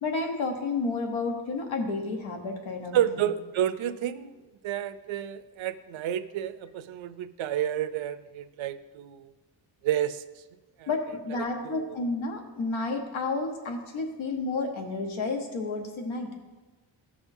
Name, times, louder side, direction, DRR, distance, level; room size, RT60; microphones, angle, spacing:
voice 1, 0.0-3.3 10.9-16.3, left 3 dB, 90° left, 3 dB, 1.2 m, -31 dB
voice 2, 2.9-4.3 4.6-9.3 9.8-10.2 10.8-10.9 11.6-11.9, right 11 dB, 85° right, 11 dB, 0.6 m, -30 dB
16.0 x 6.1 x 2.7 m, 1.2 s
wide cardioid pair, 175°, 46 cm